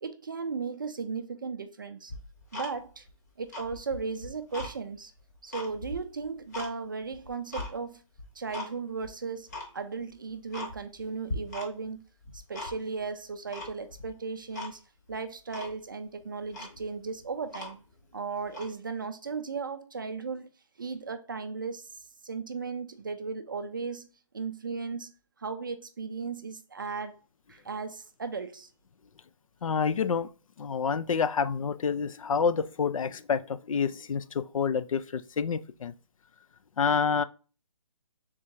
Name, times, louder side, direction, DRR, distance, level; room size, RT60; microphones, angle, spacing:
voice 1, 0.0-2.1 2.5-3.1 3.4-5.1 5.4-8.0 8.4-12.0 12.3-14.8 15.1-17.8 18.1-20.5 20.8-22.0 22.2-24.1 24.3-27.2 27.5-28.7, right 4 dB, 40° right, 0.4 m, -36 dB
Tick-tock, 2.1-3.1 3.4-4.7 5.2-6.7 7.1-7.7 8.2-8.7 9.0-9.1 9.5-9.7 10.1-10.2 10.5-11.0 11.3-11.9 12.2-13.0 13.5-14.1 14.5-14.7 15.1-15.2 15.5-15.8 16.2-16.3 16.5-18.0 18.5-18.7, left 2 dB, 30° left, 0.9 m, -39 dB
voice 2, 29.6-30.3 30.6-35.9 36.8-37.2, left 6 dB, 85° left, 0.4 m, -28 dB
3.7 x 2.6 x 4.3 m
hypercardioid pair, 170°, 17 cm